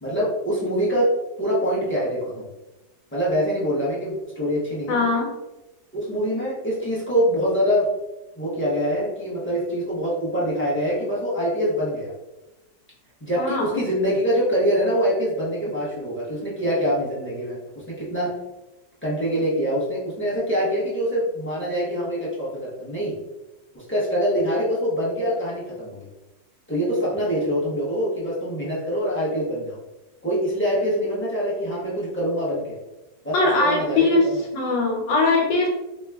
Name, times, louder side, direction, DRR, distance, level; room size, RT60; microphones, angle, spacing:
voice 1, 0.0-1.1 1.4-2.4 3.1-5.0 5.9-7.9 8.4-12.1 13.2-18.3 19.0-23.2 23.7-26.1 26.7-29.8 30.2-32.8 33.2-34.2, equal, 10° left, -7 dB, 0.5 m, -24 dB
voice 2, 4.9-5.3 13.4-13.8 33.3-34.2 34.5-35.7, left 3 dB, 85° left, -1 dB, 1.6 m, -20 dB
4.0 x 3.1 x 2.3 m, 1.0 s
omnidirectional pair, 2.0 m